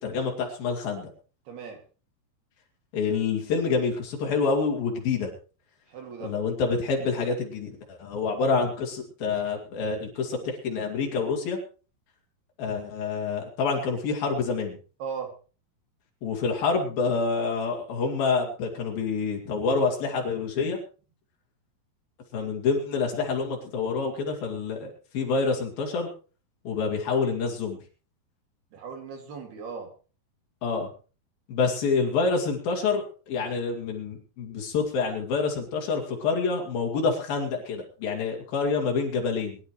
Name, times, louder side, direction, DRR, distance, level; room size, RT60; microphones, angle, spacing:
voice 1, 0.0-1.1 2.9-5.3 6.2-11.6 12.6-14.8 16.2-20.8 22.3-26.1 26.6-27.8 30.6-30.9 31.5-39.6, left 4 dB, 60° left, 0 dB, 4.2 m, -27 dB
voice 2, 1.5-1.8 5.9-6.3 15.0-15.4 28.7-29.9, right 6 dB, 70° right, 4 dB, 4.3 m, -37 dB
23.0 x 11.5 x 3.2 m, 0.36 s
omnidirectional pair, 4.7 m